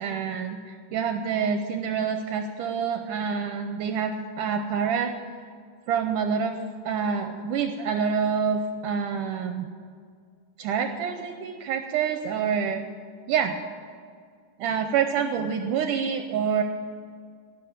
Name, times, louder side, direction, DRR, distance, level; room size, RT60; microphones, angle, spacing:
voice 1, 0.0-5.1 5.9-9.7 10.6-12.9 13.3-13.6 14.6-16.6, right 6 dB, 80° right, 6 dB, 1.9 m, -27 dB
17.0 x 6.4 x 8.7 m, 2.1 s
omnidirectional pair, 4.2 m